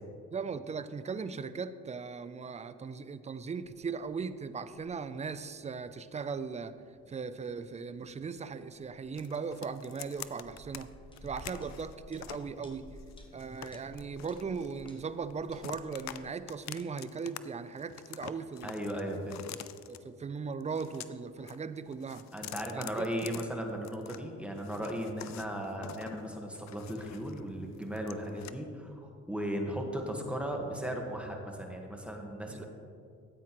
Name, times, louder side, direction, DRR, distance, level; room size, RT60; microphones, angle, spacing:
voice 1, 0.3-6.8 7.1-10.9 11.2-12.9 13.3-18.8 19.9-22.3 22.7-23.3 32.5-32.6, right 5 dB, 25° right, 12 dB, 0.4 m, -38 dB
sound 1, 3.6-16.2, left 1 dB, 15° left, 1.2 m, -56 dB
sound 2, 9.2-10.8 11.2-12.5 13.0-15.0 15.3-16.2 16.5-17.4 17.7-20.0 20.6-21.6 21.9-24.2 24.6-27.4 27.7-28.5, left 12 dB, 65° left, 0.5 m, -46 dB
voice 2, 18.6-19.4 22.3-32.6, equal, 5° right, 1 dB, 1.4 m, -36 dB
13.5 x 8.6 x 3.0 m, 2.3 s
cardioid pair, 90°, 30 cm